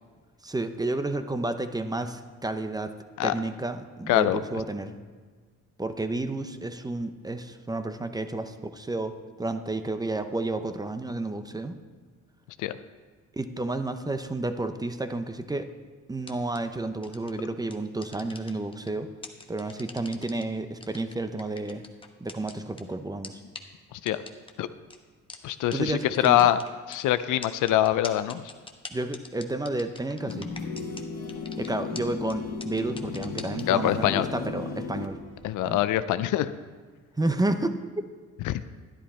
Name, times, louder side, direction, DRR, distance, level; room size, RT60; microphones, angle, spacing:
voice 1, 0.4-2.9 3.2-5.0 5.8-11.8 13.3-15.7 16.1-19.1 19.5-21.8 22.2-23.4 25.7-26.5 28.9-30.5 31.6-35.2 35.6-35.8 37.2-37.8, right 2 dB, 15° right, 9 dB, 0.7 m, -31 dB
voice 2, 4.1-4.4 12.6-12.7 23.9-24.2 24.6-24.7 25.4-26.6 26.9-28.4 33.7-34.3 35.4-36.5 38.4-38.7, left 13 dB, 85° left, 13 dB, 0.5 m, -24 dB
sound 1, 16.2-16.6 17.0-17.3 17.7-18.9 19.2-20.4 20.8-22.8 23.2-23.3 23.5-23.6 24.1-24.5 24.9-25.0 25.3-25.4 25.7-25.8 26.0-27.0 27.4-31.0 31.3-31.7 31.9-32.0 32.3-32.4 32.6-33.6, left 3 dB, 15° left, 1.0 m, -42 dB
sound 2, 30.2-35.6, left 4 dB, 60° left, 1.2 m, -35 dB
11.5 x 10.5 x 4.3 m, 1.5 s
cardioid pair, 90°, 30 cm